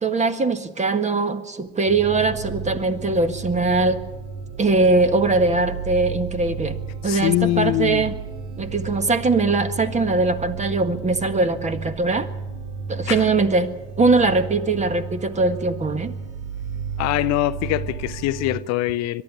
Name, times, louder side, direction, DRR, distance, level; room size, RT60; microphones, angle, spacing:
voice 1, 0.0-4.0 4.6-6.8 7.0-8.1 8.6-12.3 12.9-13.7 14.0-16.1, right 3 dB, 20° right, 1.7 m, -21 dB
sound 1, 1.9-18.6, right 5 dB, 65° right, 3.2 m, -33 dB
voice 2, 7.0-8.1 13.1-13.3 17.0-19.2, left 16 dB, 50° left, 0.8 m, -23 dB
22.5 x 12.0 x 9.7 m
hypercardioid pair, 85°, 34 cm